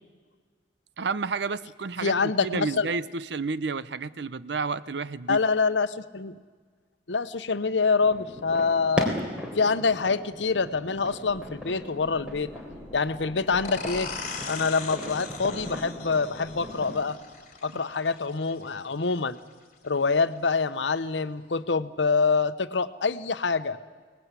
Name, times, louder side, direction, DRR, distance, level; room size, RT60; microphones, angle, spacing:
voice 1, 1.0-5.4, right 4 dB, 75° right, 17 dB, 0.7 m, -31 dB
voice 2, 2.0-2.9 5.3-6.4 7.1-9.1 9.5-12.5 12.9-14.1 14.5-17.2 17.6-19.4 19.8-23.8, left 4 dB, 85° left, 13 dB, 0.9 m, -26 dB
sound 1, 8.0-16.9, left 1 dB, 5° right, 3.7 m, -37 dB
sound 2, 13.6-19.0, left 5 dB, 40° left, 2.8 m, -39 dB
23.5 x 19.0 x 8.3 m, 1.5 s
head